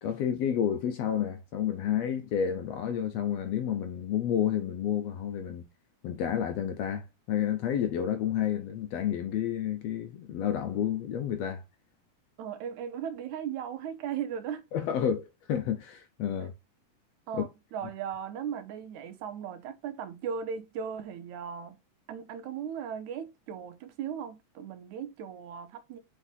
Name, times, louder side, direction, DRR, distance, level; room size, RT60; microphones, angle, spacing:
voice 1, 0.0-5.6 6.0-11.6 14.7-16.5 17.3-17.5, left 9 dB, 75° left, 1.6 m, -30 dB
voice 2, 12.4-14.6 17.3-21.8 22.1-26.0, right 8 dB, 75° right, 2.2 m, -37 dB
6.9 x 4.1 x 3.8 m
omnidirectional pair, 3.6 m